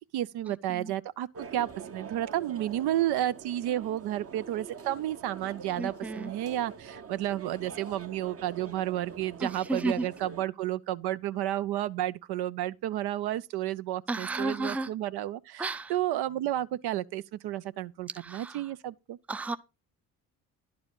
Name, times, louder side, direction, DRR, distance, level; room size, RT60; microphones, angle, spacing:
voice 1, 0.1-1.3 1.5-19.2, right 13 dB, 55° right, 0.5 m, -32 dB
sound 1, 1.3-10.5, right 6 dB, 30° right, 0.9 m, -45 dB
voice 2, 5.8-6.3 9.4-10.1 14.1-14.9 15.6-16.0 18.1-18.7 19.3-19.6, right 2 dB, 5° right, 0.5 m, -33 dB
11.0 x 4.8 x 5.3 m
hypercardioid pair, 45°, 47 cm